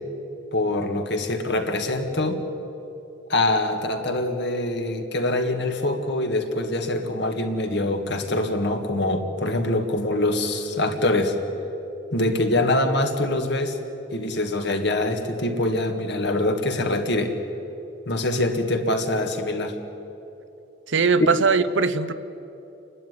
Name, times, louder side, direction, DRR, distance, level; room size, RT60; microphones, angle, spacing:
voice 1, 0.5-2.4 3.3-11.4 12.1-13.8 14.1-17.3 18.1-19.8, left 1 dB, 60° left, 5 dB, 2.0 m, -24 dB
voice 2, 20.9-22.1, right 4 dB, 70° right, 12 dB, 0.9 m, -20 dB
29.0 x 12.0 x 9.7 m, 2.9 s
head